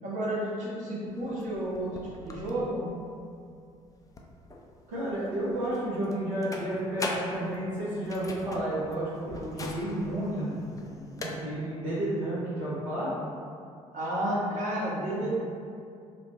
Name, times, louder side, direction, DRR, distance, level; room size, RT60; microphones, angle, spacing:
voice 1, 0.0-2.9 13.9-15.5, right 1 dB, 45° right, -6 dB, 0.9 m, -31 dB
sound 1, 1.1-11.3, left 2 dB, 20° left, 0.4 m, -42 dB
voice 2, 4.9-10.6 11.2-13.1, right 1 dB, 70° right, -10 dB, 0.8 m, -31 dB
4.0 x 2.2 x 3.1 m, 2.4 s
figure-of-eight pair, 50°, 17 cm